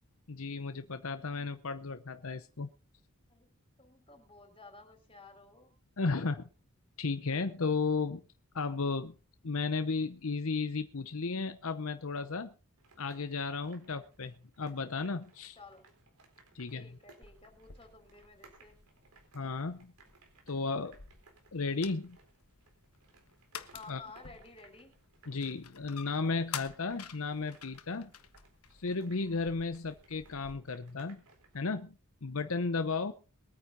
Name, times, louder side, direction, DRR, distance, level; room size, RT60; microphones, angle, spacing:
voice 1, 0.3-2.7 6.0-6.4 7.0-8.2 8.5-9.1 9.4-12.5 13.0-15.6 16.5-16.9 19.3-19.9 20.5-21.0 21.5-22.2 23.9-24.0 25.3-28.1 28.8-31.2 31.5-31.9 32.2-33.1, left 4 dB, 70° left, 0.8 m, -34 dB
voice 2, 3.8-5.7 15.6-15.8 16.7-18.8 23.7-24.9, left 3 dB, 25° left, 4.3 m, -53 dB
sound 1, 12.8-31.6, right 3 dB, 90° right, 4.2 m, -64 dB
sound 2, 17.2-30.6, left 8 dB, 85° left, 1.4 m, -50 dB
22.5 x 9.4 x 4.0 m
head